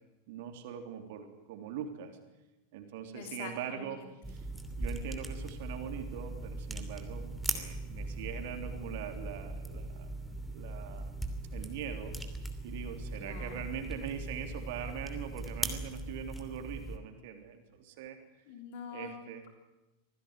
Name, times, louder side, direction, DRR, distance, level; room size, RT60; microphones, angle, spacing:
voice 1, 0.3-2.1 2.7-4.0 4.3-4.5 4.8-10.1 10.4-11.1 11.5-12.1 12.6-18.2 18.9-19.4, right 8 dB, 50° right, 5 dB, 3.4 m, -42 dB
voice 2, 3.1-4.0 13.2-13.7 18.5-19.1, left 5 dB, 50° left, 5 dB, 3.6 m, -45 dB
sound 1, 4.2-17.0, right 1 dB, ahead, 2.8 m, -39 dB
25.5 x 16.5 x 9.8 m, 1.0 s
figure-of-eight pair, 90°, 0 cm